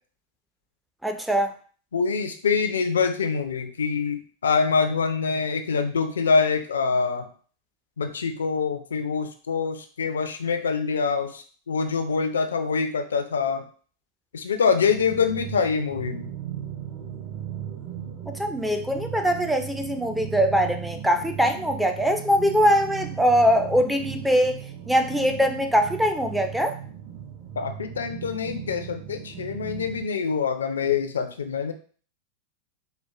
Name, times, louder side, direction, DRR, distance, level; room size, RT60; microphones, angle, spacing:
voice 1, 1.0-1.5 18.3-24.6 24.9-26.8, equal, ahead, 6 dB, 0.4 m, -22 dB
voice 2, 1.9-7.3 8.0-13.6 14.3-16.3 27.6-31.7, left 5 dB, 70° left, 8 dB, 0.4 m, -25 dB
sound 1, 14.8-30.0, right 10 dB, 35° right, 0.7 m, -37 dB
4.2 x 2.2 x 2.3 m, 0.43 s
figure-of-eight pair, 90°, 0 cm